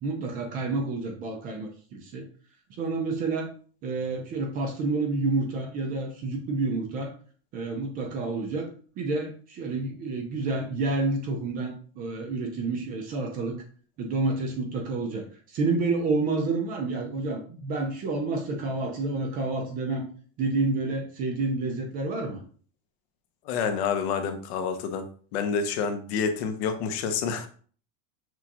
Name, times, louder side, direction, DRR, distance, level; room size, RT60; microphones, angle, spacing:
voice 1, 0.0-2.3 2.7-3.5 3.8-7.1 7.5-8.7 9.0-13.6 14.0-20.1 20.4-22.4, right 3 dB, 25° right, 3 dB, 0.4 m, -29 dB
voice 2, 23.5-25.1 25.3-27.5, left 6 dB, 55° left, 8 dB, 0.7 m, -28 dB
6.1 x 2.3 x 2.9 m, 0.43 s
supercardioid pair, 160°, 39 cm